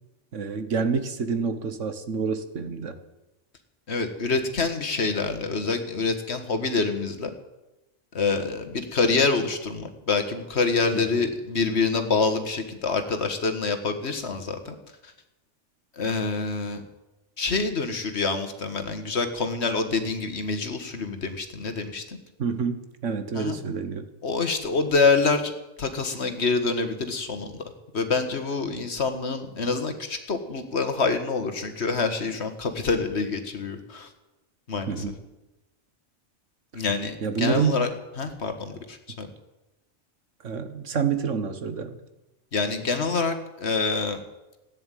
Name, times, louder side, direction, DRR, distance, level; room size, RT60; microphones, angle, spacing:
voice 1, 0.3-3.0 10.9-11.0 22.4-24.1 34.9-35.1 37.2-37.9 40.4-42.0, right 6 dB, 85° right, 10 dB, 1.6 m, -27 dB
voice 2, 3.9-7.3 8.1-14.7 16.0-16.8 17.4-22.2 23.3-23.5 24.2-25.5 25.8-27.5 27.9-34.1 34.7-34.9 36.7-37.9 38.2-39.3 42.5-44.2, left 4 dB, 65° left, 8 dB, 1.9 m, -26 dB
15.0 x 9.9 x 9.2 m, 1.0 s
omnidirectional pair, 1.2 m